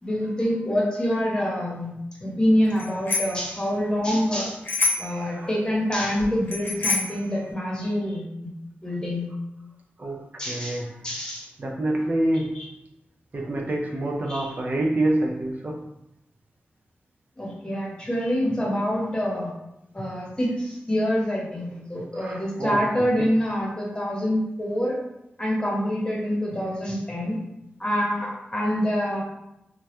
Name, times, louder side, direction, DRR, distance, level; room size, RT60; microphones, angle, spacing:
voice 1, 0.0-1.9 2.2-4.6 5.0-8.2 8.8-9.3 10.4-11.5 12.5-12.7 14.3-14.6 17.4-19.5 19.9-25.0 25.4-27.4 27.8-29.2, equal, 20° left, -4 dB, 0.8 m, -26 dB
Bicycle bell, 2.8-3.5 4.7-5.2 6.5-7.2, left 3 dB, 55° left, 0.5 m, -26 dB
voice 2, 5.1-5.5 10.0-10.8 11.6-12.5 13.3-15.8 22.1-22.8, right 1 dB, 40° right, -1 dB, 0.3 m, -27 dB
2.2 x 2.1 x 2.8 m, 0.86 s
cardioid pair, 70°, 4 cm